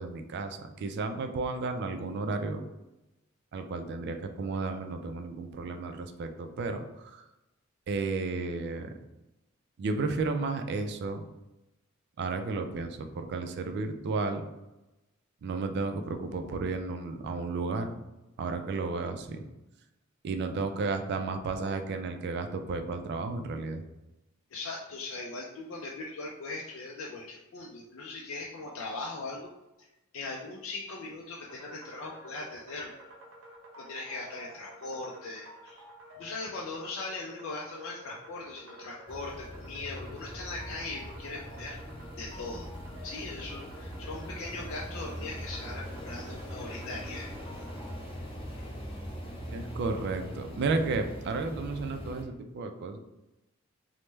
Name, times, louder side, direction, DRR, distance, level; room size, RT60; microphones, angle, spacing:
voice 1, 0.0-2.6 3.5-7.2 7.9-8.9 9.8-11.2 12.2-14.4 15.4-17.9 18.4-19.4 20.2-23.8 49.5-53.0, right 3 dB, 55° right, 7 dB, 0.3 m, -33 dB
voice 2, 24.5-29.5 29.8-29.9 30.1-32.9 33.8-35.8 36.2-41.8 42.2-42.7 43.0-47.3, left 3 dB, 65° left, -2 dB, 0.4 m, -40 dB
sound 1, 31.5-48.0, equal, 85° right, 0.6 m, -51 dB
sound 2, 39.1-52.2, equal, 25° left, 0.6 m, -41 dB
3.1 x 2.1 x 3.2 m, 0.97 s
head